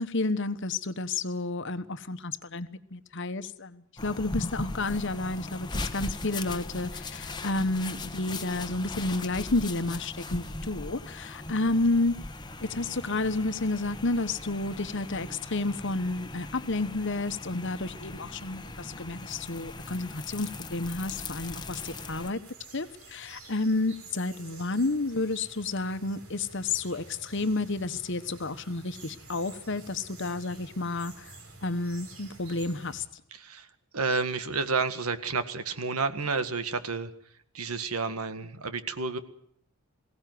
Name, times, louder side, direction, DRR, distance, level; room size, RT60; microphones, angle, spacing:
voice 1, 0.0-12.2 12.6-22.4 22.7-31.3 31.6-33.0, left 2 dB, 55° left, 11 dB, 1.2 m, -31 dB
sound 1, 4.0-22.3, left 2 dB, 20° left, 1.2 m, -39 dB
sound 2, 21.7-33.0, right 3 dB, 65° right, 4.9 m, -50 dB
voice 2, 33.3-33.7 33.9-37.1 37.5-39.2, right 4 dB, 90° right, 10 dB, 1.7 m, -30 dB
22.0 x 17.0 x 9.3 m, 0.67 s
head